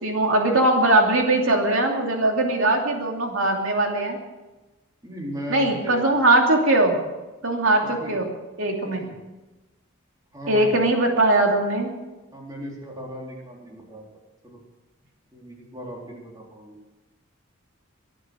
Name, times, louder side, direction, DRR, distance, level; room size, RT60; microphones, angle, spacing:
voice 1, 0.0-4.2 5.5-7.0 7.4-8.3 8.6-9.0 10.5-11.9, right 2 dB, 70° right, 1 dB, 2.9 m, -20 dB
voice 2, 5.0-6.1 7.8-8.2 8.8-9.2 10.3-10.9 12.3-14.0 14.4-14.6 15.3-16.8, equal, 15° right, -3 dB, 4.0 m, -37 dB
23.0 x 9.1 x 6.4 m, 1.1 s
head